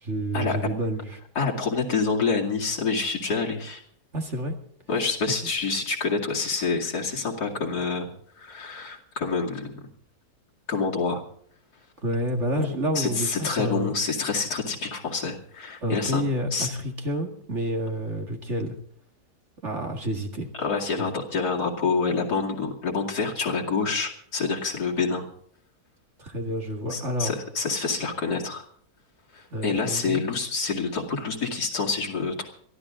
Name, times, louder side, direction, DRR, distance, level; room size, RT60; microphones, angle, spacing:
voice 1, 0.0-1.2 4.1-4.6 5.3-5.5 12.0-14.0 15.8-18.7 19.6-20.5 20.9-21.1 26.2-27.3 29.5-30.2, equal, 45° right, 4 dB, 2.3 m, -29 dB
voice 2, 1.3-3.8 4.9-8.1 8.4-9.9 10.7-11.2 12.5-12.7 12.9-16.2 16.5-16.7 20.5-25.3 26.9-28.6 29.3-32.5, left 4 dB, 75° left, -1 dB, 2.9 m, -27 dB
23.0 x 14.0 x 3.8 m, 0.63 s
omnidirectional pair, 1.7 m